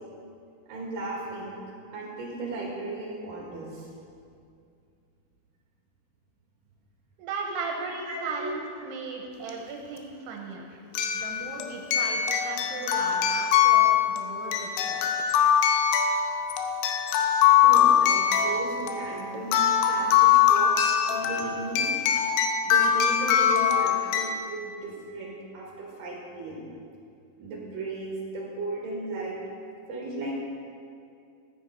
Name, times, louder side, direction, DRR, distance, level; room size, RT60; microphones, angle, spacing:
voice 1, 0.7-1.6 1.9-3.9 7.8-8.6 11.2-11.6 17.6-21.9 22.6-26.7 27.4-29.4 29.9-30.4, right 2 dB, 60° right, -2 dB, 3.1 m, -36 dB
voice 2, 7.2-10.8 11.1-15.1, right 4 dB, 85° right, 1 dB, 2.9 m, -37 dB
sound 1, 9.5-9.6 10.9-24.4, left 9 dB, 90° left, 2.9 m, -23 dB
14.0 x 9.4 x 4.5 m, 2.4 s
omnidirectional pair, 4.7 m